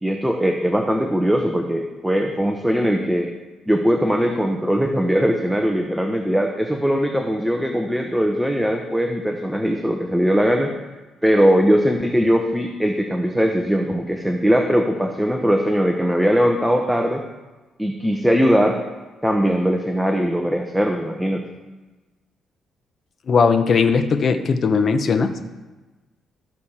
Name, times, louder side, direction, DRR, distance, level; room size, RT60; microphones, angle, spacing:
voice 1, 0.0-3.3 3.7-10.7 11.2-17.2 17.8-18.8 19.2-21.4, equal, ahead, 3 dB, 0.9 m, -20 dB
voice 2, 23.3-25.5, left 5 dB, 50° left, 8 dB, 0.9 m, -18 dB
14.0 x 6.4 x 4.3 m, 1.2 s
cardioid pair, 90°, 0 cm